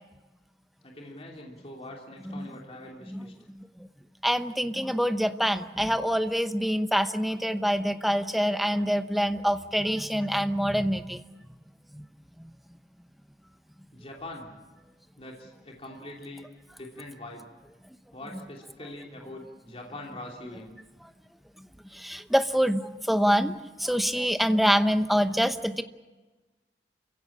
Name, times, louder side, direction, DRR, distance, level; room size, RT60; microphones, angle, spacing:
voice 1, 0.8-3.3 13.9-14.5 15.2-16.5 16.8-17.5 18.1-20.7, left 1 dB, 35° left, 0 dB, 3.1 m, -43 dB
voice 2, 4.2-11.2 11.9-12.0 21.9-22.8 23.1-23.5 23.8-25.8, equal, ahead, 9 dB, 0.8 m, -25 dB
28.5 x 16.0 x 8.6 m, 1.2 s
head